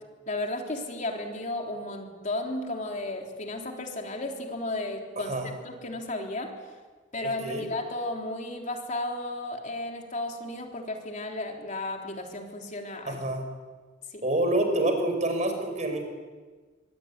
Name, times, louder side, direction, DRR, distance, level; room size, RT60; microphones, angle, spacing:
voice 1, 0.3-5.4 5.6-6.5 7.1-13.2 14.1-14.2, left 2 dB, 40° left, 2 dB, 3.7 m, -34 dB
voice 2, 5.2-5.5 7.2-7.7 13.1-13.4 14.2-16.1, right 1 dB, 40° right, 6 dB, 5.5 m, -27 dB
25.5 x 23.5 x 9.8 m, 1.4 s
head